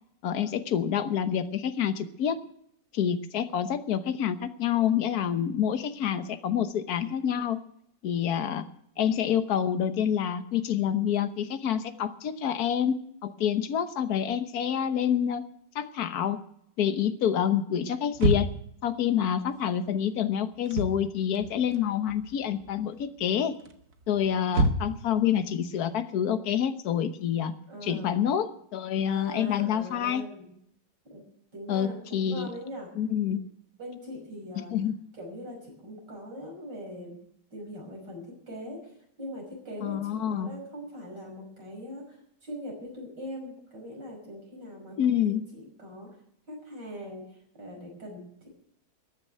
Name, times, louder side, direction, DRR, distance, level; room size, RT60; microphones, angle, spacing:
voice 1, 0.2-2.4 2.9-7.6 8.0-8.6 9.0-13.0 13.2-15.4 15.7-16.4 16.8-18.5 18.8-23.5 24.1-27.5 27.8-30.2 31.7-32.5 33.0-33.4 34.7-34.9 39.8-40.5 45.0-45.4, left 9 dB, 65° left, 10 dB, 1.5 m, -27 dB
sound 1, 18.1-18.8 20.5-21.0 21.3-22.3 22.6-23.0 23.6-25.1, right 1 dB, 65° right, 1.7 m, -27 dB
voice 2, 27.7-28.2 29.1-30.5 31.1-31.2 31.5-32.9 33.8-34.7 35.1-37.2 37.5-45.2 45.5-46.2 46.5-48.5, equal, 90° right, 0 dB, 6.3 m, -41 dB
14.0 x 9.7 x 9.2 m, 0.70 s
omnidirectional pair, 1.8 m